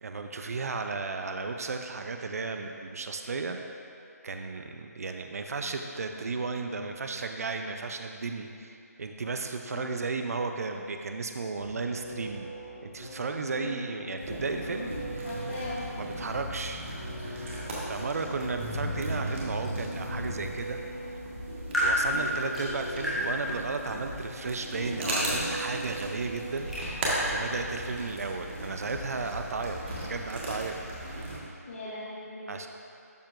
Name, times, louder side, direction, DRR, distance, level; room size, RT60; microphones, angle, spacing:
voice 1, 0.0-3.6 4.2-12.5 12.8-15.3 16.0-16.8 17.2-20.8 21.8-29.8 30.1-30.8 31.1-31.3 32.5-32.7, right 4 dB, 60° right, 5 dB, 0.5 m, -34 dB
sound 1, 11.6-28.3, right 1 dB, 75° left, 1.5 m, -42 dB
voice 2, 13.5-13.8 15.2-16.4 22.0-22.3 31.7-32.5, left 2 dB, 45° left, -8 dB, 1.1 m, -40 dB
sound 2, 14.2-31.4, right 1 dB, 45° right, 1.6 m, -36 dB
sound 3, 18.3-29.4, equal, ahead, 0.9 m, -36 dB
12.0 x 4.5 x 2.5 m, 2.5 s
figure-of-eight pair, 165°, 9 cm